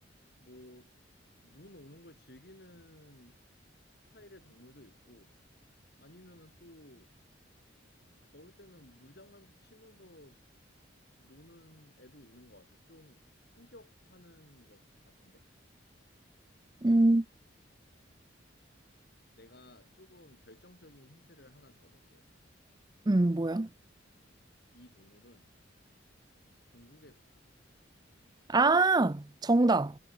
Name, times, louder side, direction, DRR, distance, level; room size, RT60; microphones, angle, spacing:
voice 1, 0.4-0.9 1.4-3.4 4.1-5.3 5.6-7.1 8.2-10.4 11.2-13.2 13.5-15.5 19.3-22.3 24.7-25.5 26.6-27.5, left 1 dB, 55° left, 7.4 m, -56 dB
voice 2, 16.8-17.2 23.1-23.7 28.5-30.0, right 2 dB, 20° right, 0.5 m, -24 dB
head